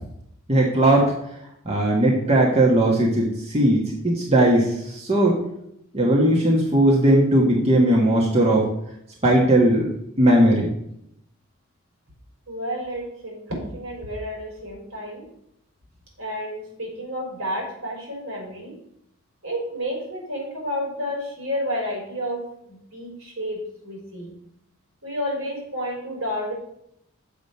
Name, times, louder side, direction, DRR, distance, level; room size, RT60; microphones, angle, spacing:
voice 1, 0.5-1.1 1.6-5.4 5.9-8.6 9.2-9.9 10.2-10.7, right 1 dB, 30° right, -2 dB, 1.4 m, -18 dB
voice 2, 12.5-15.3 16.2-18.8 19.4-24.3 25.0-26.5, equal, 80° right, -1 dB, 4.0 m, -31 dB
7.0 x 5.0 x 6.9 m, 0.76 s
head